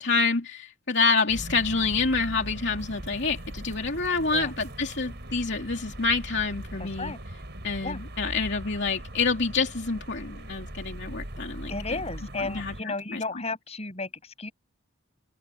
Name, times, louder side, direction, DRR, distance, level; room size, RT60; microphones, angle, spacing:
voice 1, 0.0-7.1 7.6-11.7 12.5-12.7 13.1-13.2, left 4 dB, 55° left, 3.0 m, -27 dB
sound 1, 1.3-12.8, right 1 dB, 55° right, 5.1 m, -40 dB
voice 2, 6.8-7.2 7.8-8.0 11.7-14.5, left 3 dB, 30° left, 6.8 m, -34 dB
open air
head